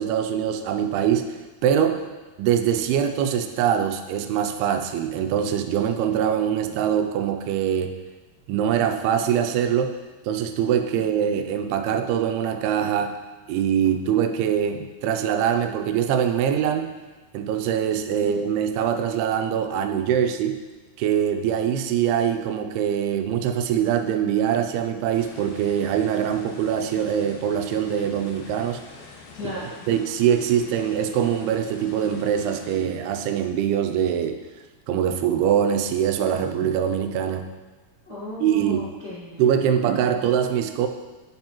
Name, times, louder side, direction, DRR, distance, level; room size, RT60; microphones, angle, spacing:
voice 1, 0.0-2.0 2.4-7.9 8.5-9.9 10.3-13.2 13.5-16.9 17.3-20.5 21.0-28.8 29.9-34.4 34.9-37.5 38.4-38.8 39.4-40.9, right 9 dB, 85° right, 6 dB, 2.6 m, -23 dB
sound 1, 25.1-32.8, left 5 dB, 75° left, 2.6 m, -45 dB
voice 2, 29.3-29.7 38.0-39.4, left 1 dB, 55° left, -10 dB, 1.0 m, -35 dB
8.8 x 8.2 x 3.0 m, 1.2 s
omnidirectional pair, 4.5 m